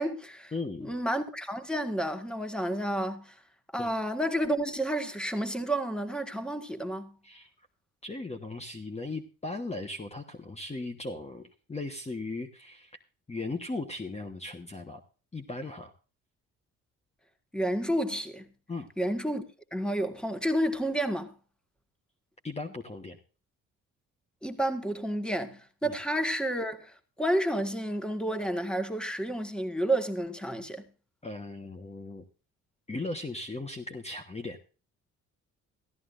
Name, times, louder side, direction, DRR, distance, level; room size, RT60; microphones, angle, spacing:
voice 1, 0.0-0.5 0.8-3.3 3.7-7.1 17.5-18.4 19.0-19.4 19.7-21.3 24.4-30.8, right 1 dB, 5° left, 1.7 m, -30 dB
voice 2, 0.5-0.9 3.8-3.9 7.2-7.5 8.0-13.0 13.3-15.0 15.3-15.9 18.7-18.9 22.4-23.2 25.8-25.9 31.2-32.2 32.9-34.6, left 2 dB, 20° left, 1.3 m, -37 dB
15.0 x 13.0 x 2.6 m
cardioid pair, 90°, 30 cm